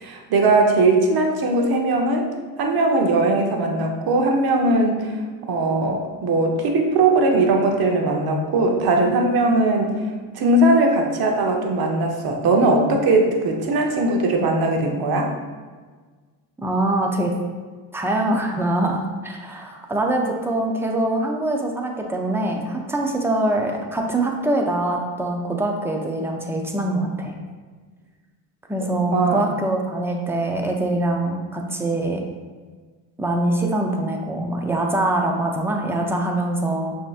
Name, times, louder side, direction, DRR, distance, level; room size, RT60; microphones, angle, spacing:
voice 1, 0.0-2.3 2.6-5.2 5.5-9.9 10.3-15.3 29.1-29.4, right 2 dB, 50° right, 2 dB, 0.8 m, -19 dB
voice 2, 16.6-17.4 17.9-27.3 28.7-32.2 33.2-37.0, right 1 dB, 5° right, 1 dB, 0.4 m, -23 dB
5.9 x 2.8 x 2.4 m, 1.5 s
cardioid pair, 95°, 47 cm